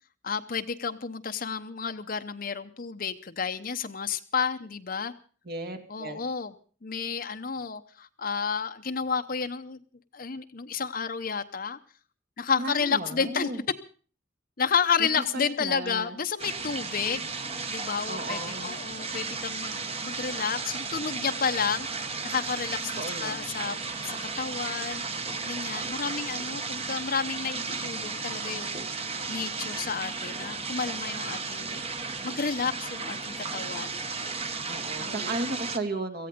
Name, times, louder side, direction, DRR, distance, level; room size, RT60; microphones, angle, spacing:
voice 1, 0.2-5.1 5.9-6.5 6.8-9.8 10.1-11.8 12.4-13.5 14.6-17.3 17.7-23.8 24.0-25.0 25.4-28.9 29.3-31.8 32.2-34.0 35.0-35.3, left 6 dB, 50° left, 8 dB, 0.8 m, -31 dB
voice 2, 5.4-6.2 12.6-13.6 15.0-15.1 15.3-16.2 18.1-18.7 23.0-23.7 34.7-36.3, right 2 dB, 55° right, 8 dB, 2.2 m, -35 dB
sound 1, 16.4-35.8, right 4 dB, 30° right, 1.3 m, -34 dB
17.5 x 14.5 x 5.2 m, 0.41 s
head